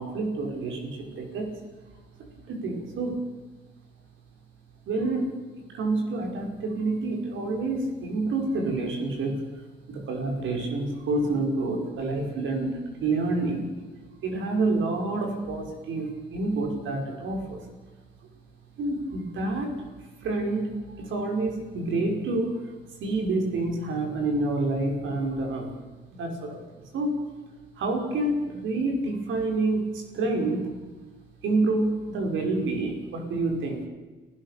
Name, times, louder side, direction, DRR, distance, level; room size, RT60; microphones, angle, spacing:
voice 1, 0.0-1.5 2.5-3.2 4.9-5.3 5.7-9.3 9.9-13.7 14.2-17.6 18.8-19.7 20.2-22.6 23.0-25.8 26.1-26.6 26.9-27.2 27.8-30.7 31.4-33.8, right 2 dB, 75° right, 2 dB, 6.0 m, -28 dB
30.0 x 15.5 x 6.9 m, 1.3 s
cardioid pair, 90°, 20 cm